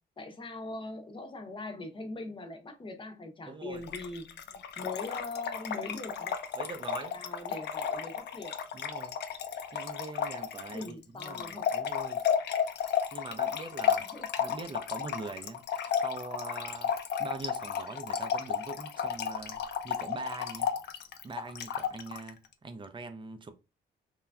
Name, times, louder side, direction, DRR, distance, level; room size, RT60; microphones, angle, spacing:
voice 1, 0.2-6.4 7.1-8.5 10.7-11.7 14.0-14.3, left 2 dB, 25° left, 0.7 m, -41 dB
voice 2, 3.5-3.8 6.5-7.2 8.7-9.1 9.7-12.2 13.1-14.1 14.4-15.6 15.9-16.9 17.2-23.5, right 3 dB, 25° right, 0.5 m, -42 dB
Trickle dribble / Fill (with liquid), 3.8-22.3, left 8 dB, 60° left, 0.5 m, -33 dB
3.0 x 2.3 x 2.3 m
cardioid pair, 90°, 20 cm